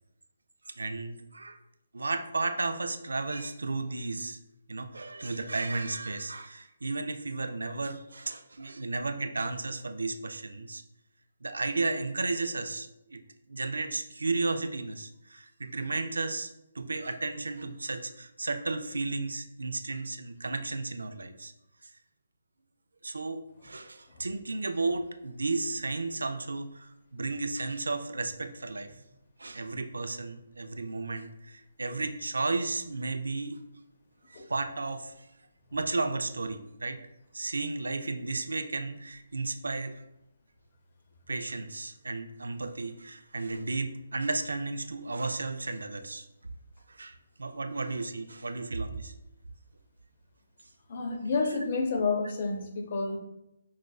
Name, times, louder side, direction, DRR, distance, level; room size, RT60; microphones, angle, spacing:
voice 1, 0.7-1.6 1.9-4.4 4.7-10.8 11.4-13.2 13.5-21.5 21.8-21.9 23.0-28.9 29.4-33.6 34.3-35.3 35.7-37.0 37.3-39.9 41.3-46.3 46.9-49.1, right 3 dB, 90° right, 8 dB, 0.3 m, -33 dB
voice 2, 50.9-53.2, left 4 dB, 45° left, 4 dB, 0.6 m, -29 dB
4.8 x 2.4 x 2.2 m, 0.87 s
hypercardioid pair, 155°, 0 cm